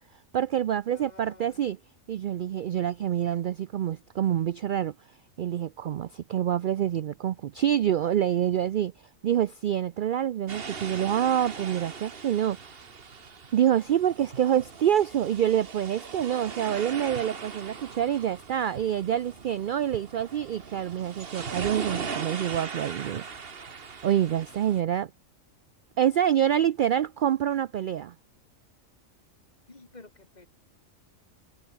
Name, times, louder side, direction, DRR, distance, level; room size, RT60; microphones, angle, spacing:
voice 1, 0.3-1.8 2.1-4.9 5.4-8.9 9.2-12.6 13.5-23.2 24.0-25.1 26.0-28.1, right 10 dB, 70° right, 0.4 m, -26 dB
voice 2, 0.9-1.8 17.6-17.8 29.7-30.5, left 2 dB, 30° left, 2.4 m, -51 dB
sound 1, 10.5-24.8, right 5 dB, 45° right, 1.6 m, -39 dB
omnidirectional pair, 1.4 m